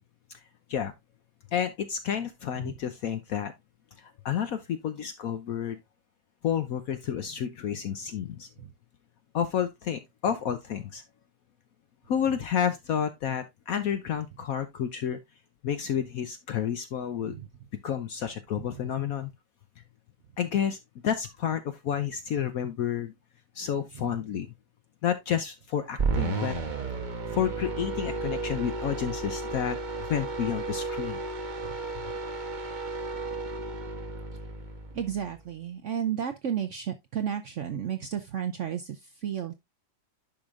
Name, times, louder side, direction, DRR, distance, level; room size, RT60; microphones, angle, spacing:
voice 1, 1.5-3.5 4.0-5.8 6.4-8.5 9.3-11.0 12.1-15.2 15.6-17.3 17.8-19.3 20.4-20.8 21.0-23.1 23.5-24.5 25.0-26.5 27.3-29.8 30.1-31.2, left 9 dB, 65° left, 0.9 m, -30 dB
sound 1, 26.0-35.4, right 3 dB, 35° right, 0.9 m, -33 dB
voice 2, 34.9-39.6, right 9 dB, 70° right, 0.7 m, -33 dB
10.5 x 5.0 x 2.4 m
omnidirectional pair, 2.0 m